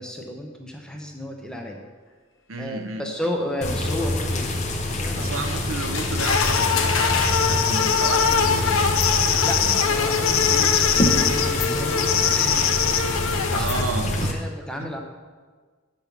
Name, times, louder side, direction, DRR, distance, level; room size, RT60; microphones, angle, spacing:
voice 1, 0.0-1.8 2.6-5.5 9.4-12.8 13.1-13.7 14.1-15.0, left 1 dB, 5° left, 1 dB, 0.8 m, -33 dB
voice 2, 2.5-3.0 5.1-7.1 7.5-8.9 9.6-9.8 13.5-14.3, right 3 dB, 80° right, 6 dB, 0.8 m, -31 dB
sound 1, 3.6-14.3, left 1 dB, 35° left, 0.8 m, -26 dB
sound 2, 5.2-7.4 8.4-8.5 9.1-9.3, left 5 dB, 70° left, 0.9 m, -28 dB
sound 3, 6.2-13.8, left 7 dB, 85° left, 0.6 m, -22 dB
8.2 x 5.4 x 6.0 m, 1.4 s
head